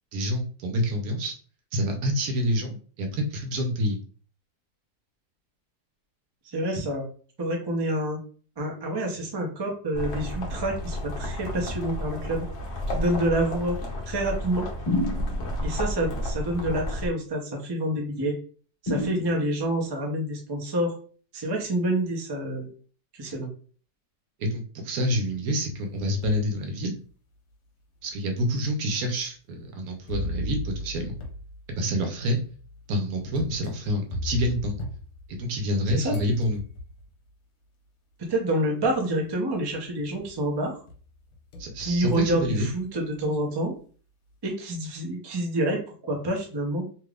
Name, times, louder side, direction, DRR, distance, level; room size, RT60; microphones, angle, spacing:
voice 1, 0.1-1.3 1.7-4.0 24.4-27.0 28.0-31.2 31.7-32.4 32.9-34.8 35.3-36.6 41.6-42.7, equal, 70° right, 4 dB, 1.1 m, -27 dB
voice 2, 6.5-7.0 7.4-8.2 8.6-12.5 12.9-13.8 14.1-14.6 15.6-18.3 18.8-20.9 21.3-22.7 23.2-23.5 35.9-36.2 38.3-40.7 41.8-43.7 44.4-46.8, right 1 dB, 40° right, 1 dB, 0.3 m, -27 dB
sound 1, 9.9-17.1, equal, 55° left, 0.9 m, -32 dB
sound 2, 14.9-15.7 18.9-19.8, left 2 dB, 25° left, 1.5 m, -29 dB
sound 3, 25.6-26.5 27.1-27.2 28.1-28.2 30.1-35.8 36.1-37.1 38.3-38.4 38.9-39.3 39.7-40.5 40.9-43.2, left 1 dB, 70° left, 1.2 m, -38 dB
3.3 x 2.9 x 2.4 m, 0.41 s
omnidirectional pair, 1.7 m